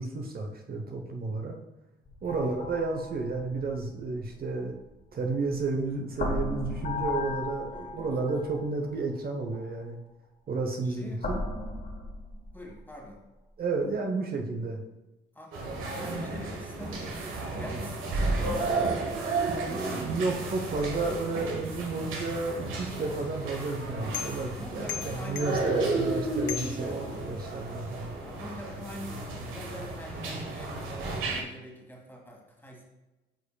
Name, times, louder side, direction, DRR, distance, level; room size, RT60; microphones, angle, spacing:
voice 1, 0.0-1.6 2.2-4.7 5.1-10.0 10.5-11.4 13.6-14.8 19.7-28.1, right 3 dB, 50° right, 2 dB, 0.9 m, -32 dB
sound 1, 2.1-5.7 6.1-8.6 9.5-9.7 11.2-13.0, left 2 dB, 45° left, 1.3 m, -36 dB
voice 2, 2.2-2.6 7.7-8.1 10.8-11.2 12.5-13.2 15.3-17.2 17.4-19.0 20.4-21.2 24.6-26.1 28.2-32.8, left 1 dB, 10° left, -1 dB, 1.8 m, -45 dB
sound 2, 15.5-31.4, right 2 dB, 90° right, 1.3 m, -33 dB
sound 3, 22.9-27.6, left 11 dB, 70° left, 0.5 m, -41 dB
9.1 x 5.1 x 2.3 m, 1.1 s
cardioid pair, 90°, 20 cm